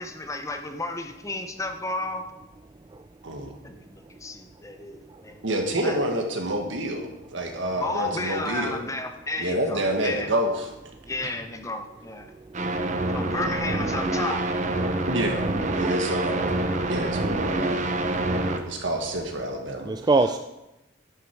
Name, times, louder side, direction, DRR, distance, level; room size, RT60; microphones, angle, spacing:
voice 1, 0.0-2.2 3.6-5.4 5.8-6.0 7.8-10.3 11.0-12.3 13.1-14.5, left 2 dB, 15° left, 6 dB, 0.7 m, -32 dB
voice 2, 5.4-8.8 9.4-10.7 11.2-11.3 15.0-16.5 16.9-17.9 18.7-19.9, right 1 dB, 70° right, 3 dB, 1.7 m, -28 dB
sound 1, 12.5-18.6, right 2 dB, 40° right, 0.9 m, -26 dB
voice 3, 19.9-20.4, right 3 dB, 20° right, 8 dB, 0.3 m, -24 dB
11.5 x 8.5 x 4.7 m, 0.96 s
head